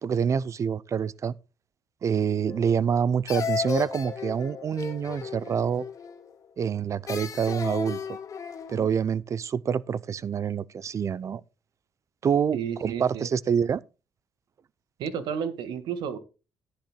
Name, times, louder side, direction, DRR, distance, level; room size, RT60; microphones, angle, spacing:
voice 1, 0.0-1.3 2.0-5.8 6.6-8.2 8.7-11.4 12.2-13.8, right 7 dB, 45° right, 0.6 m, -26 dB
sound 1, 2.5-3.0 3.3-6.3 7.1-8.9, left 7 dB, 45° left, 2.3 m, -35 dB
voice 2, 12.5-13.3 15.0-16.2, right 7 dB, 85° right, 1.8 m, -32 dB
14.5 x 10.5 x 2.3 m
cardioid pair, 105°, 7 cm